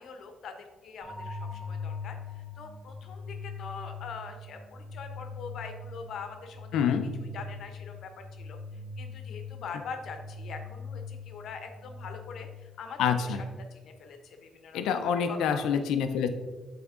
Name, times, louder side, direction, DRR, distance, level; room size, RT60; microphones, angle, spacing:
voice 1, 0.0-6.9 7.3-13.4 13.7-15.8, left 5 dB, 70° left, 5 dB, 0.9 m, -43 dB
sound 1, 1.0-13.0, left 4 dB, 45° right, 1.8 m, -42 dB
voice 2, 6.7-7.1 13.0-13.4 14.7-16.3, left 7 dB, 85° left, 8 dB, 0.5 m, -26 dB
7.9 x 3.5 x 3.7 m, 1.3 s
cardioid pair, 90°, 0 cm